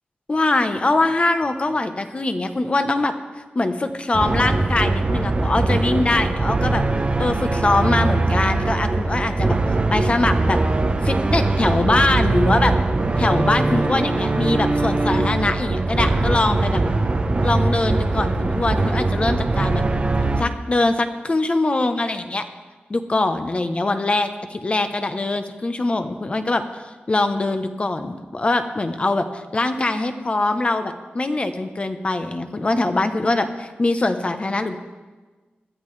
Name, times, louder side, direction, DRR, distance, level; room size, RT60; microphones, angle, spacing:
voice 1, 0.3-6.8 7.2-9.6 9.9-10.6 11.0-12.7 13.2-16.8 17.4-19.8 20.4-22.4 22.9-26.6 27.1-34.8, left 2 dB, 35° left, 8 dB, 0.9 m, -22 dB
sound 1, 4.1-20.4, right 2 dB, 30° right, 0.8 m, -21 dB
21.5 x 12.5 x 3.3 m, 1.3 s
wide cardioid pair, 125°, 4 cm